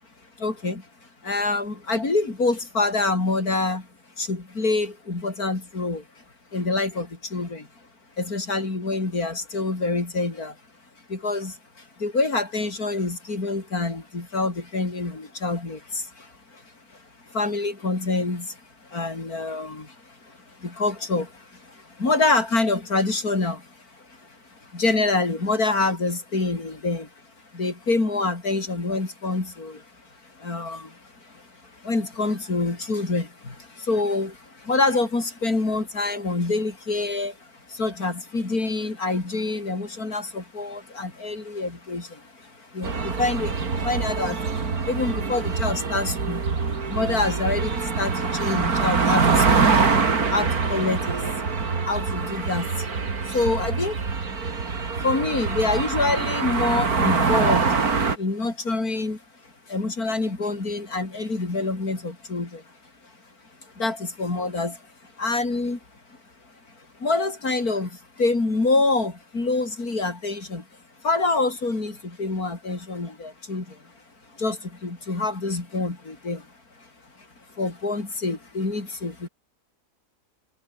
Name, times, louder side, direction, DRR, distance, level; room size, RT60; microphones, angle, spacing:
voice 1, 0.4-0.9 1.2-3.9 4.2-6.0 6.5-7.7 8.2-10.5 11.1-11.6 12.0-16.3 17.3-18.6 18.9-19.9 20.3-20.4 20.6-23.7 24.7-27.1 27.5-29.8 30.4-31.0 31.3-31.4 31.8-37.4 37.7-44.5 44.8-49.8 50.3-51.3 51.8-52.9 53.2-54.2 55.0-57.7 58.2-59.2 59.7-62.6 63.8-64.8 65.2-65.8 67.0-70.6 71.0-73.8 74.4-76.5 77.6-79.3, left 3 dB, 80° left, 4.9 m, -26 dB
sound 1, 42.8-58.2, right 4 dB, 80° right, 3.0 m, -24 dB
omnidirectional pair, 1.6 m